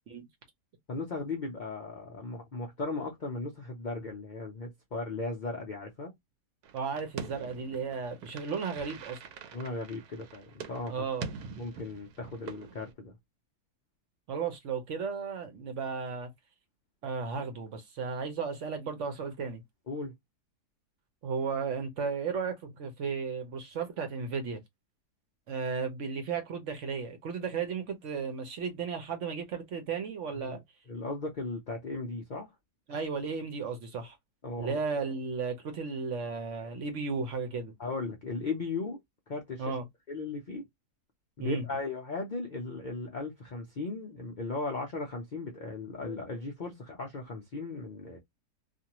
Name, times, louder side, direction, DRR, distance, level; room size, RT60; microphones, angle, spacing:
voice 1, 0.9-6.1 9.5-11.1 11.6-13.2 19.9-20.1 30.3-30.6 30.9-32.5 34.4-34.8 37.8-39.0 39.3-39.8 40.1-40.7 41.4-48.2, left 3 dB, 90° left, 0.4 m, -37 dB
sound 1, 6.6-12.9, right 6 dB, 80° right, 1.1 m, -45 dB
voice 2, 6.7-9.2 10.9-11.3 14.3-16.3 17.0-19.6 21.2-24.6 25.5-30.6 32.9-34.2 34.6-37.7 39.6-39.8 41.4-41.7, right 5 dB, 60° right, 0.9 m, -34 dB
2.6 x 2.4 x 2.8 m
omnidirectional pair, 1.7 m